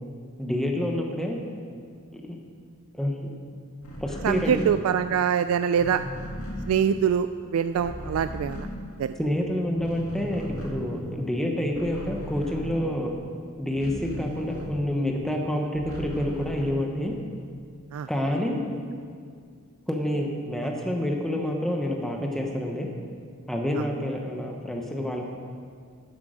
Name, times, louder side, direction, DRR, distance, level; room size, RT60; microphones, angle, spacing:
voice 1, 0.4-1.4 2.1-2.4 3.0-3.3 4.0-4.7 9.2-13.2 13.6-17.1 18.1-18.6 19.9-22.9 23.5-25.3, left 1 dB, ahead, 1 dB, 0.9 m, -28 dB
sound 1, 3.8-9.4 9.7-15.1 15.5-17.3, equal, 85° left, 2.2 m, -37 dB
voice 2, 4.2-6.0 6.7-8.7 9.0-9.1 17.9-18.1 23.8-23.9, right 8 dB, 75° right, 12 dB, 0.3 m, -24 dB
12.5 x 8.3 x 5.0 m, 2.2 s
head